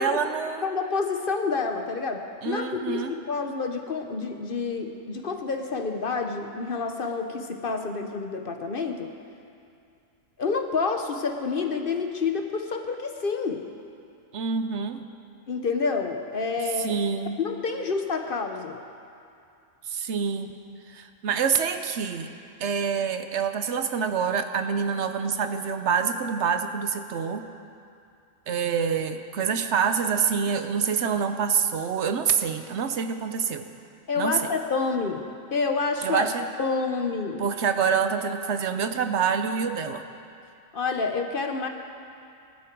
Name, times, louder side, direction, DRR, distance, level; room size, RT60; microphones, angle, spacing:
voice 1, 0.0-0.7 2.4-3.1 14.3-15.0 16.8-17.4 19.8-20.6 20.9-22.3 22.6-27.5 28.5-33.7 34.2-34.4 36.0-36.5 37.4-40.0, right 6 dB, 65° right, 8 dB, 0.9 m, -26 dB
voice 2, 0.6-9.1 10.4-13.6 15.5-16.9 17.4-18.8 34.1-35.2 35.5-36.3 36.6-37.4 40.7-41.7, left 4 dB, 50° left, 5 dB, 0.9 m, -28 dB
19.5 x 11.5 x 4.6 m, 2.5 s
omnidirectional pair, 1.3 m